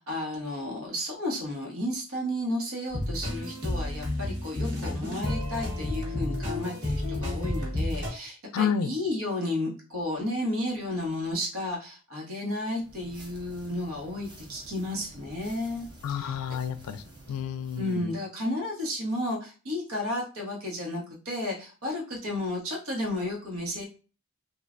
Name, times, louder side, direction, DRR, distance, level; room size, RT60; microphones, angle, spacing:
voice 1, 0.1-16.4 17.8-23.8, left 1 dB, 70° right, -2 dB, 1.1 m, -32 dB
sound 1, 2.9-8.1, left 1 dB, 40° right, 1.4 m, -31 dB
voice 2, 8.5-8.9 16.0-18.2, left 7 dB, 90° left, 12 dB, 0.3 m, -30 dB
sound 2, 12.7-18.0, right 1 dB, 20° right, 0.6 m, -50 dB
3.2 x 2.4 x 2.4 m, 0.35 s
head